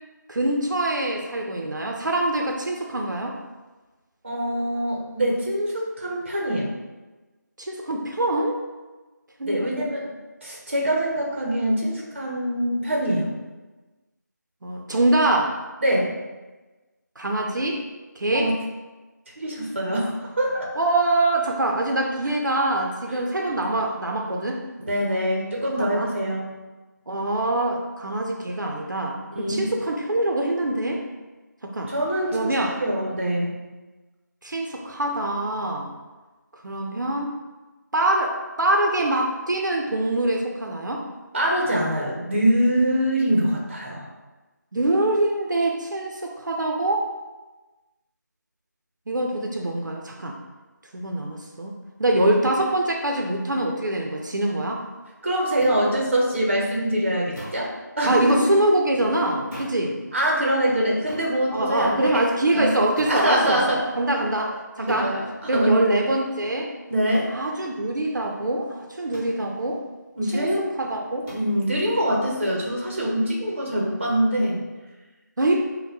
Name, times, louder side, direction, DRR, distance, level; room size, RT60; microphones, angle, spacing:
voice 1, 0.3-3.3 7.6-8.6 9.4-9.9 14.6-15.5 17.2-17.8 18.2-18.5 20.8-24.6 25.8-26.1 27.1-31.0 31.6-31.9 32.3-32.7 34.4-35.9 36.6-37.3 37.9-41.0 44.7-47.1 49.1-50.3 50.9-51.7 52.0-54.8 58.1-60.0 61.5-64.5 64.8-65.1 65.5-66.7 67.3-69.8 70.3-70.5 70.8-71.3 75.4-75.5, right 1 dB, 75° right, 1 dB, 0.5 m, -24 dB
voice 2, 4.2-6.7 9.4-10.1 10.4-13.3 15.8-16.1 18.3-18.5 19.4-20.7 23.1-23.2 24.9-26.5 29.4-29.7 31.9-33.5 41.3-44.1 55.2-58.5 60.1-62.2 62.5-62.7 63.1-63.8 64.4-65.8 66.9-67.3 70.2-70.6 71.3-74.6, right 1 dB, 40° right, -2 dB, 0.7 m, -24 dB
sound 1, 55.6-55.8 57.3-57.7 59.5-59.9 61.1-61.3 63.0-63.3 64.9-65.1 67.1-67.4 69.1-69.4 71.3-71.5, equal, 5° left, 1.0 m, -38 dB
5.2 x 2.1 x 2.8 m, 1.2 s
figure-of-eight pair, 175°, 10 cm